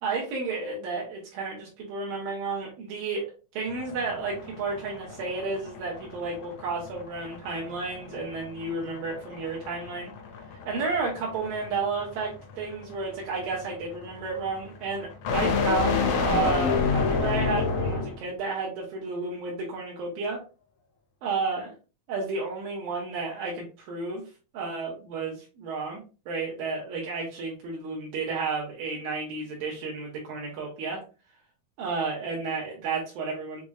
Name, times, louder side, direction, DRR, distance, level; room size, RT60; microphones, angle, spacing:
voice 1, 0.0-3.2 3.5-10.1 10.7-12.3 12.6-20.4 21.2-21.7 22.1-24.2 24.5-31.0 31.8-33.6, right 4 dB, 75° right, -3 dB, 2.9 m, -32 dB
sound 1, 3.7-18.3, left 5 dB, 90° left, 1.4 m, -30 dB
6.9 x 3.0 x 2.3 m, 0.32 s
omnidirectional pair, 4.2 m